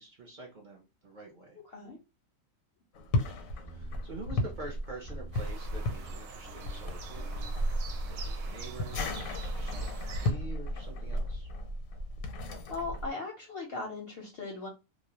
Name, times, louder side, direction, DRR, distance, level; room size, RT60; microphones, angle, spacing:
voice 1, 0.0-1.6 3.7-11.5, right 2 dB, 50° right, 0 dB, 0.6 m, -47 dB
voice 2, 1.6-2.0 12.7-14.7, left 3 dB, 60° left, 0 dB, 0.7 m, -38 dB
piłka do kosza na tartanie i odgłos tablicy, 2.9-13.1, left 1 dB, 85° left, 1.0 m, -34 dB
sound 1, 3.6-4.0 4.3-4.7 5.0-5.4 5.7-6.1 6.5-6.8 7.2-7.5 7.9-8.2 8.6-8.9, right 6 dB, 20° right, 0.8 m, -49 dB
sound 2, 5.3-10.3, right 5 dB, 70° right, 0.9 m, -47 dB
2.3 x 2.0 x 2.8 m, 0.27 s
omnidirectional pair, 1.4 m